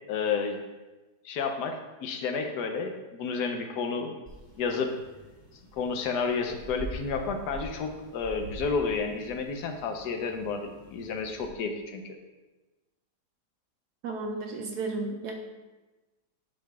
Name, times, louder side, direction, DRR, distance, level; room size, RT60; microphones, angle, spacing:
voice 1, 0.1-0.6 1.2-4.1 4.6-4.9 5.7-12.2, left 5 dB, 75° left, 5 dB, 1.3 m, -31 dB
sound 1, 4.3-11.5, right 2 dB, 15° left, 1.3 m, -45 dB
voice 2, 14.0-15.3, right 3 dB, 75° right, 2 dB, 1.1 m, -33 dB
11.5 x 5.0 x 2.3 m, 1.2 s
omnidirectional pair, 1.8 m